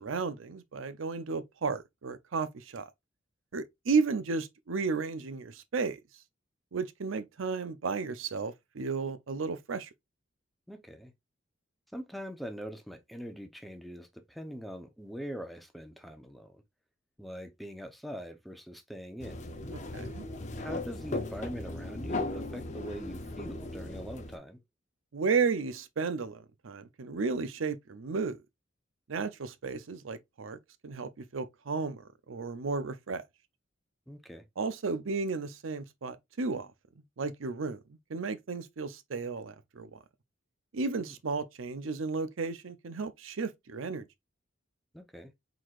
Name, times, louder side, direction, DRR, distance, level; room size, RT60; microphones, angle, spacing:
voice 1, 0.0-2.9 3.5-6.0 6.7-9.9 19.7-20.3 25.1-28.4 29.1-33.2 34.6-36.7 37.2-37.8 38.1-40.0 40.7-44.1, right 4 dB, 85° right, 0.6 m, -33 dB
voice 2, 10.7-11.1 11.9-16.6 17.2-19.5 20.6-24.6 34.1-34.4 41.0-41.1 44.9-45.3, equal, ahead, 0.7 m, -43 dB
sound 1, 19.2-24.4, left 2 dB, 40° left, 0.7 m, -37 dB
4.7 x 3.9 x 2.4 m
head